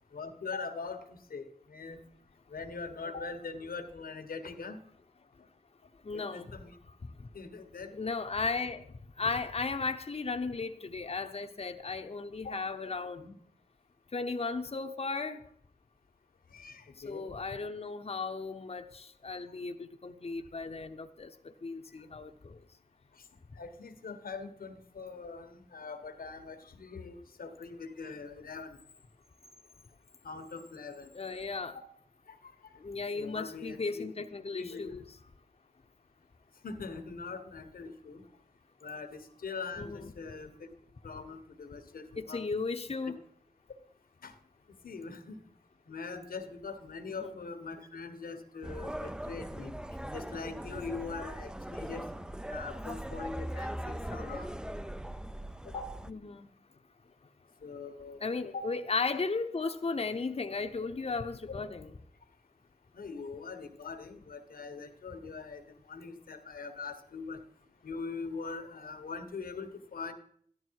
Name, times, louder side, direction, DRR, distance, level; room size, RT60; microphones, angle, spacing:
voice 1, 0.1-2.0 2.5-4.8 6.1-6.7 7.3-8.0 12.4-12.5 13.2-13.3 16.5-17.3 23.6-28.8 30.2-31.1 33.2-34.1 34.5-34.9 36.6-38.2 38.8-40.5 41.0-42.5 43.0-43.1 44.2-44.3 44.8-45.4 45.9-49.7 50.1-52.0 52.5-54.5 55.7-55.8 57.6-58.2 58.5-58.6 62.9-67.4 67.8-70.1, left 4 dB, 85° left, 8 dB, 1.3 m, -42 dB
voice 2, 6.0-6.5 7.9-8.8 9.2-13.2 14.1-15.4 17.1-21.3 21.6-22.6 31.1-31.8 32.8-35.0 39.8-40.1 42.2-43.2 47.2-47.4 56.1-56.5 58.2-61.9, left 4 dB, 45° left, 6 dB, 0.9 m, -35 dB
sound 1, 48.6-56.1, right 1 dB, 5° right, 0.5 m, -40 dB
13.5 x 11.5 x 4.7 m, 0.64 s
cardioid pair, 40°, 15 cm